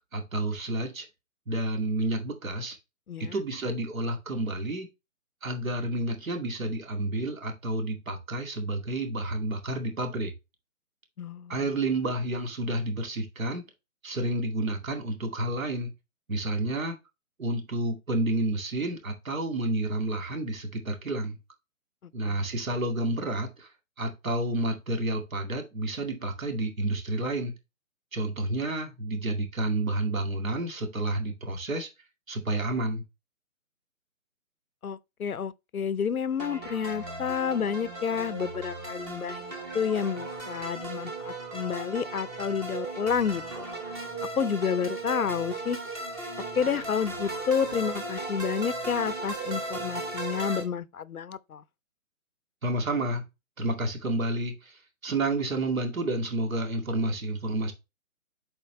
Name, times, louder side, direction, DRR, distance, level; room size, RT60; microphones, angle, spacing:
voice 1, 0.1-1.1 1.5-2.8 3.2-4.9 5.4-10.3 11.5-13.6 14.0-15.9 16.3-16.9 17.4-21.4 22.1-23.7 24.0-27.5 28.1-31.9 32.3-33.0 52.6-53.2 53.6-57.7, right 2 dB, 70° right, 2.4 m, -30 dB
voice 2, 3.1-3.4 11.2-11.7 22.2-22.4 34.8-39.4 39.7-43.7 44.4-45.8 46.5-51.6, left 7 dB, 85° left, 0.7 m, -30 dB
sound 1, 36.4-50.6, right 2 dB, 15° right, 0.9 m, -36 dB
8.1 x 4.4 x 3.1 m
figure-of-eight pair, 145°, 42 cm